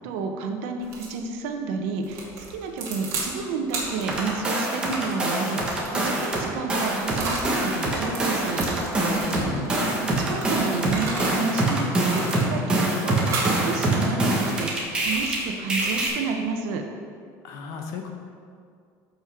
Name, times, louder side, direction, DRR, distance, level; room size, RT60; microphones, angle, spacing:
voice 1, 0.0-2.2 2.5-8.6 10.0-11.9 12.1-16.8, right 4 dB, 75° right, 4 dB, 1.1 m, -30 dB
sound 1, 0.8-1.2 2.0-3.3 3.7-7.5 8.0-11.7 12.0-12.8 13.2-13.6 14.1-16.3, right 3 dB, 40° right, 2.3 m, -35 dB
sound 2, 4.1-6.4 6.7-15.4 15.7-16.1, right 2 dB, 10° right, 1.5 m, -24 dB
voice 2, 9.3-10.0 17.4-18.2, left 4 dB, 50° left, 3 dB, 1.2 m, -34 dB
13.5 x 5.6 x 4.6 m, 2.2 s
cardioid pair, 175°, 8 cm